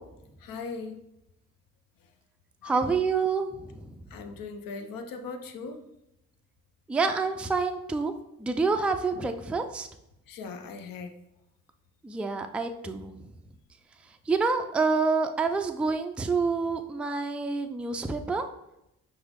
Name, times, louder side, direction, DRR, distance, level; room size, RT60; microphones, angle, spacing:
voice 1, 0.4-1.0 2.6-2.8 4.1-5.8 10.3-11.1, left 4 dB, 60° left, 7 dB, 0.7 m, -39 dB
voice 2, 2.6-4.0 6.9-8.1 8.4-9.9 12.0-13.1 14.1-18.4, right 4 dB, 5° right, 6 dB, 0.3 m, -27 dB
5.5 x 2.1 x 3.5 m, 0.83 s
hypercardioid pair, 45°, 39 cm